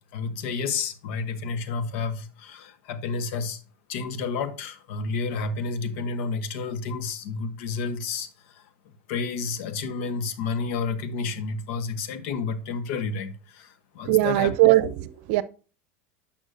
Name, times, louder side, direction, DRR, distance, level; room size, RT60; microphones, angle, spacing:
voice 1, 0.1-3.6 3.9-8.3 8.5-8.6 9.1-14.5, left 4 dB, 65° left, 1.1 m, -30 dB
voice 2, 14.0-15.4, right 17 dB, 65° right, 0.7 m, -20 dB
11.0 x 5.7 x 2.6 m
hypercardioid pair, 100°, 7 cm